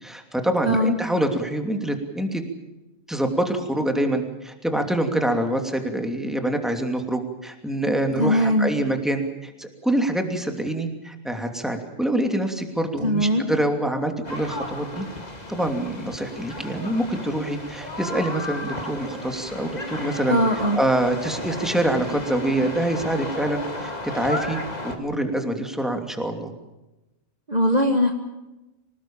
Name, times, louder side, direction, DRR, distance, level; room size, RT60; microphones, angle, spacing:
voice 1, 0.0-2.4 3.1-15.0 15.5-20.4 20.8-24.6 25.0-26.5, right 1 dB, ahead, 4 dB, 2.8 m, -25 dB
voice 2, 8.2-8.7 13.0-13.5 20.3-20.8 27.5-28.1, equal, 30° right, 3 dB, 1.7 m, -20 dB
sound 1, 14.2-25.0, left 2 dB, 30° left, 2.5 m, -34 dB
26.0 x 19.5 x 7.3 m, 1.0 s
omnidirectional pair, 1.4 m